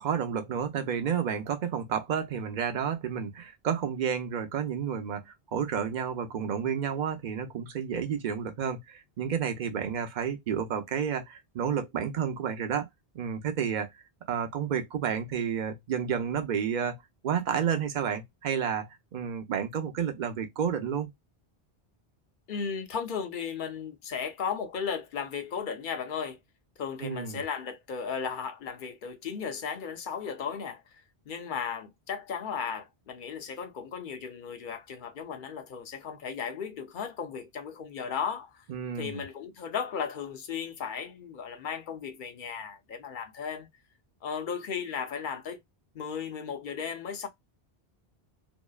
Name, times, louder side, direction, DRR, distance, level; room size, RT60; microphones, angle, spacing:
voice 1, 0.0-12.9 13.1-13.9 14.3-17.0 17.2-21.1 27.0-27.4 38.7-39.2, right 7 dB, 55° right, 0.7 m, -31 dB
voice 2, 22.5-26.4 26.8-30.8 31.3-38.6 39.0-43.7 44.2-45.6 45.9-47.3, left 6 dB, 60° left, 0.7 m, -35 dB
2.7 x 2.1 x 2.2 m
omnidirectional pair, 1.0 m